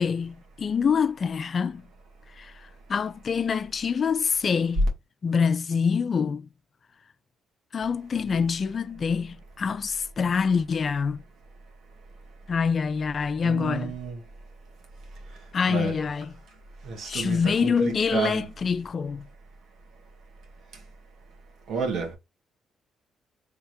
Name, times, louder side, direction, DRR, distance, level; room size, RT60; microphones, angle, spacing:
voice 1, 0.0-1.8 2.4-2.5 2.9-4.9 5.2-6.5 7.7-11.2 12.5-14.0 15.5-16.4 17.1-19.2, left 6 dB, 45° left, 0.4 m, -25 dB
voice 2, 13.4-14.2 15.7-15.9 16.8-18.5 21.7-22.2, right 5 dB, 75° right, 1.8 m, -31 dB
3.5 x 3.5 x 3.0 m
cardioid pair, 90°, 0 cm